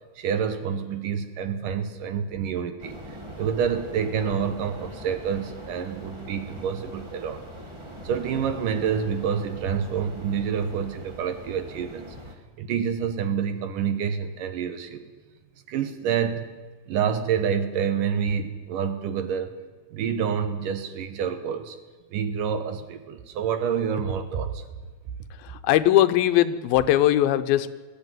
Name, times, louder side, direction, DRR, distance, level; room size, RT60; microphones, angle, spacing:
voice 1, 0.2-7.4 8.0-12.2 12.6-15.1 15.7-16.5 16.9-19.5 19.9-21.8 22.1-24.6 25.5-25.6, right 7 dB, 70° right, 9 dB, 2.5 m, -28 dB
sound 1, 2.8-12.4, equal, 40° right, 0.4 m, -42 dB
voice 2, 25.6-27.7, left 13 dB, 80° left, 12 dB, 2.6 m, -20 dB
20.0 x 15.0 x 9.3 m, 1.3 s
omnidirectional pair, 4.3 m